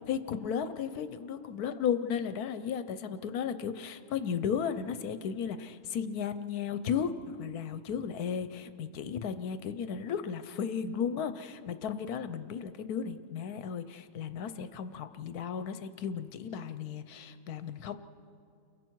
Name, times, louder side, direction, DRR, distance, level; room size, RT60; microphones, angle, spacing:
voice 1, 0.1-7.1 7.4-18.0, left 7 dB, 65° left, 11 dB, 1.1 m, -34 dB
29.5 x 22.5 x 4.6 m, 2.5 s
omnidirectional pair, 1.9 m